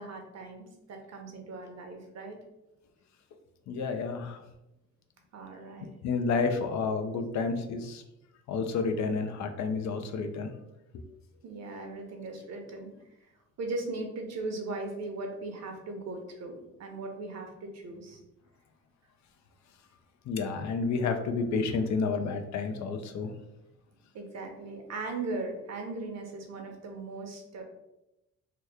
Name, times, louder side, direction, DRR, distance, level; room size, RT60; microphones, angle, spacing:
voice 1, 0.0-2.4 5.3-5.9 11.4-12.9 13.2-13.3 13.6-18.2 24.1-27.6, right 3 dB, 60° right, 4 dB, 0.8 m, -38 dB
voice 2, 3.7-4.4 6.0-8.0 8.5-10.5 10.9-11.1 20.3-23.3, left 4 dB, 65° left, 7 dB, 0.5 m, -30 dB
2.9 x 2.3 x 3.4 m, 0.91 s
cardioid pair, 90°, 30 cm